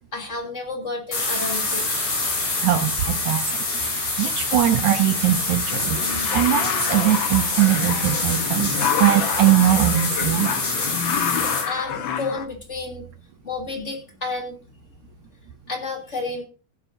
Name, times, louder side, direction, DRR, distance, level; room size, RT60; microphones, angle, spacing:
voice 1, 0.1-1.9 11.6-13.1 13.4-14.6 15.7-16.4, left 3 dB, 20° left, 2 dB, 2.8 m, -31 dB
sound 1, 1.1-11.6, left 2 dB, 85° left, 8.8 m, -26 dB
voice 2, 2.6-3.4 3.8-10.5, right 12 dB, 70° right, 9 dB, 2.0 m, -21 dB
sound 2, 5.3-12.5, left 8 dB, 70° left, 1.2 m, -28 dB
17.5 x 11.0 x 2.6 m, 0.35 s
omnidirectional pair, 3.7 m